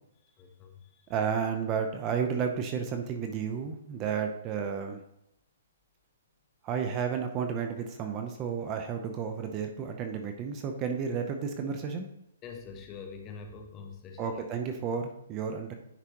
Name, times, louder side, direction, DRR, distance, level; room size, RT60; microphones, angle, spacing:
voice 1, 0.4-1.1 12.4-14.5, left 5 dB, 20° left, 4 dB, 0.9 m, -45 dB
voice 2, 1.1-5.0 6.6-12.1 14.2-15.7, right 6 dB, 25° right, 5 dB, 0.6 m, -32 dB
9.9 x 4.8 x 2.9 m, 0.81 s
hypercardioid pair, 160°, 0 cm